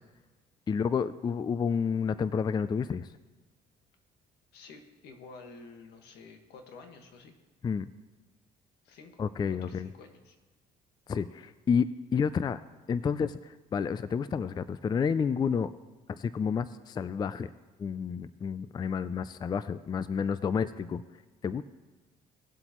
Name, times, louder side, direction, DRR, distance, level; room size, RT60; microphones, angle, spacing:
voice 1, 0.7-3.1 7.6-7.9 9.2-9.9 11.1-12.6 12.9-15.7 16.2-17.5 17.8-21.0 21.4-21.6, left 6 dB, 25° left, 14 dB, 0.3 m, -30 dB
voice 2, 4.5-7.3 8.8-9.2 9.5-10.4, left 4 dB, 80° left, 4 dB, 1.6 m, -50 dB
19.0 x 7.9 x 3.0 m, 1.2 s
cardioid pair, 110°, 17 cm